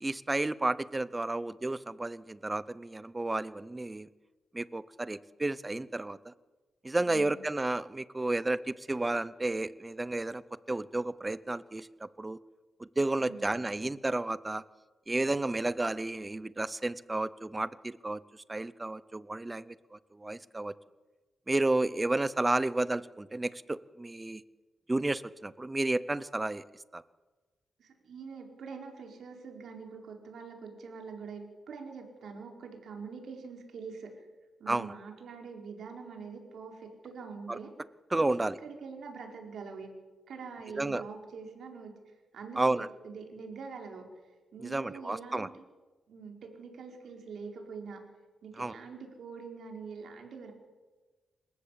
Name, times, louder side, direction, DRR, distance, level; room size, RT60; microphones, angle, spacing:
voice 1, 0.0-4.1 4.5-6.3 6.8-10.4 10.7-12.4 12.8-14.6 15.1-20.7 21.5-24.4 24.9-26.6 26.9-27.0 34.7-34.9 37.5-37.6 38.1-38.6 40.7-41.0 42.6-42.9 44.6-45.5 48.6-48.7, right 2 dB, 15° right, 17 dB, 0.7 m, -32 dB
voice 2, 7.0-7.4 13.2-13.6 27.8-34.1 34.6-37.7 38.1-40.0 40.3-44.1 44.5-45.5 46.1-48.1 48.4-50.5, right 5 dB, 65° right, 3 dB, 4.8 m, -44 dB
27.0 x 15.0 x 8.6 m, 1.2 s
wide cardioid pair, 175°, 0 cm